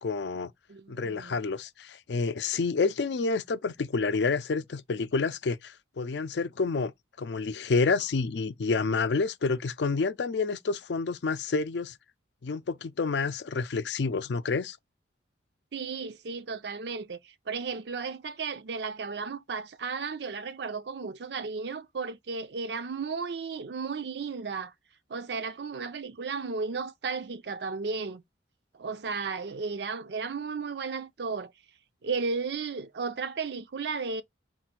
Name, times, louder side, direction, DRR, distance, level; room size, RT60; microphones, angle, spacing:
voice 1, 0.0-0.5 0.9-6.9 7.2-11.9 12.4-14.8, left 4 dB, 70° left, 0.5 m, -29 dB
voice 2, 0.7-1.4 15.7-24.7 25.1-28.2 28.8-31.5 32.0-34.2, right 4 dB, 65° right, 0.5 m, -34 dB
4.1 x 2.5 x 4.4 m
head